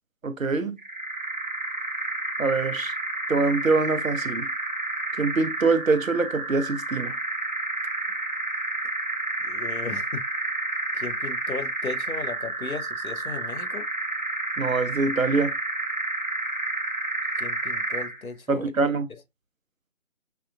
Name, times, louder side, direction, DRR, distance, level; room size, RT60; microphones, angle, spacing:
voice 1, 0.2-0.8 2.4-2.9 3.3-4.5 5.2-7.2 14.6-15.5 18.5-19.1, right 3 dB, 70° right, 0.7 m, -24 dB
sound 1, 0.8-18.2, right 2 dB, 35° right, 0.9 m, -30 dB
voice 2, 9.4-10.2 10.9-13.8 17.4-18.6, left 4 dB, 85° left, 0.9 m, -36 dB
5.6 x 2.4 x 2.2 m
figure-of-eight pair, 160°, 41 cm